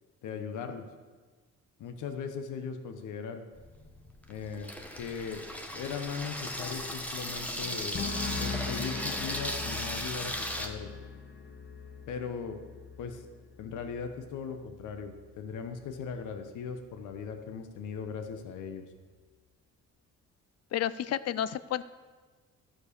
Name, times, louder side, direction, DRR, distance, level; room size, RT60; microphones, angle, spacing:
voice 1, 0.2-0.8 1.8-3.4 4.3-5.4 5.7-8.1 8.4-10.9 12.1-12.6 13.0-13.2 13.6-18.8, left 6 dB, 80° left, 7 dB, 1.0 m, -38 dB
Water tap faucet / Sink (filling or washing), 3.5-10.7, equal, 5° left, 1.2 m, -37 dB
sound 1, 7.9-15.4 15.7-16.2, left 5 dB, 40° left, 1.0 m, -41 dB
voice 2, 20.7-21.8, left 11 dB, 55° left, 16 dB, 0.5 m, -31 dB
12.5 x 4.6 x 6.7 m, 1.4 s
cardioid pair, 90°, 30 cm